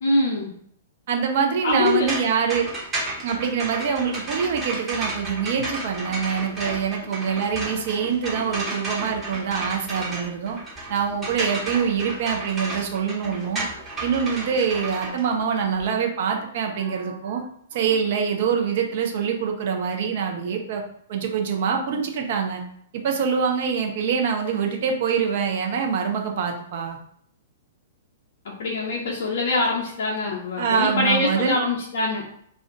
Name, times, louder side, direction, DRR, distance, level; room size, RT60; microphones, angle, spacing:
voice 1, 0.0-0.5 1.6-2.1 28.4-32.3, left 2 dB, 60° left, -3 dB, 0.6 m, -24 dB
voice 2, 1.1-2.7 3.2-10.6 10.9-13.6 14.0-17.4 17.7-20.8 21.1-22.6 22.9-27.0 30.6-31.6, right 6 dB, 50° right, 2 dB, 0.5 m, -25 dB
sound 1, 1.7-15.9, right 2 dB, 20° right, 0.9 m, -33 dB
2.5 x 2.1 x 3.7 m, 0.66 s
figure-of-eight pair, 110°, 0 cm